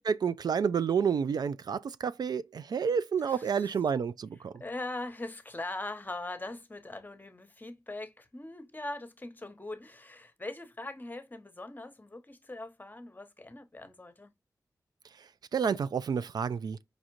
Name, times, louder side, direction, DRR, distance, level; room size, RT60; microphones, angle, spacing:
voice 1, 0.1-4.5 15.5-16.8, right 6 dB, 70° right, 0.4 m, -29 dB
voice 2, 3.3-3.7 4.5-14.3, left 2 dB, 25° left, 0.9 m, -41 dB
5.2 x 2.4 x 2.9 m
cardioid pair, 50°, 7 cm